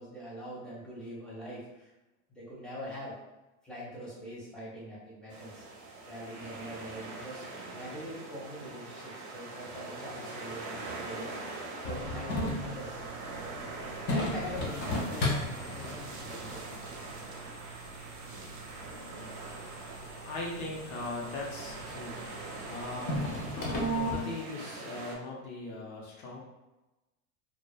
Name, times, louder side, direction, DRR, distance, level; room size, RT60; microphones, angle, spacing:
voice 1, 0.0-1.9 2.3-3.2 3.6-5.6 6.1-13.0 13.9-16.6, equal, ahead, -8 dB, 0.9 m, -43 dB
sound 1, 5.3-25.2, right 2 dB, 40° right, 0.6 m, -43 dB
sound 2, 11.8-24.1, left 1 dB, 25° left, 0.4 m, -37 dB
voice 2, 20.2-22.2 22.7-23.4 23.9-26.4, left 2 dB, 70° left, -3 dB, 0.9 m, -39 dB
2.6 x 2.2 x 2.3 m, 1.0 s
supercardioid pair, 115°, 45 cm